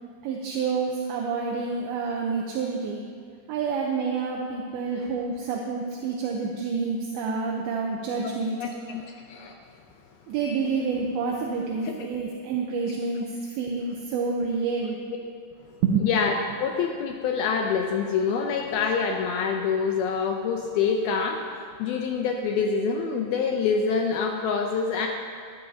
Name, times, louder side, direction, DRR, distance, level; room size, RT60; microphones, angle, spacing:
voice 1, 0.2-3.0 3.5-8.6 10.3-15.0 15.8-16.1, right 5 dB, 75° right, -1 dB, 2.4 m, -28 dB
voice 2, 8.6-9.0 9.3-9.6 11.8-11.9 14.7-14.8 15.1-15.3 16.0-25.1, left 5 dB, 85° left, 2 dB, 2.2 m, -26 dB
20.0 x 12.5 x 2.9 m, 2.3 s
omnidirectional pair, 5.2 m